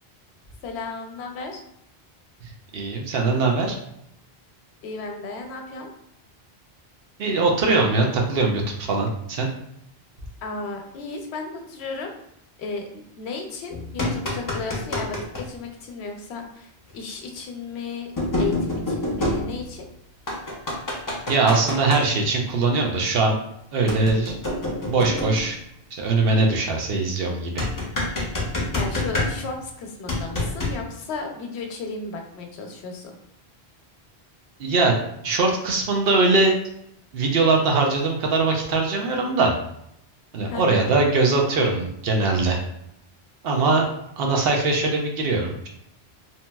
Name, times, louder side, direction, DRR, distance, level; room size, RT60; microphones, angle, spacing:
voice 1, 0.6-1.6 4.8-5.9 10.4-12.1 12.6-18.1 18.4-19.8 28.7-33.1 40.5-41.0, left 3 dB, 80° left, 3 dB, 0.8 m, -34 dB
voice 2, 2.7-3.8 7.2-9.5 21.3-23.4 23.7-24.3 24.8-25.6 26.0-27.7 34.6-34.9 35.2-36.5 37.1-39.6 40.3-42.6 43.4-43.8 44.2-45.7, right 3 dB, 65° right, 1 dB, 0.8 m, -21 dB
sound 1, 13.7-15.5 16.9-17.0 18.2-19.9 20.3-22.0 23.9-25.6 27.6-29.7 30.1-30.8, left 2 dB, 25° left, 0.4 m, -27 dB
2.8 x 2.8 x 2.2 m, 0.77 s
omnidirectional pair, 1.1 m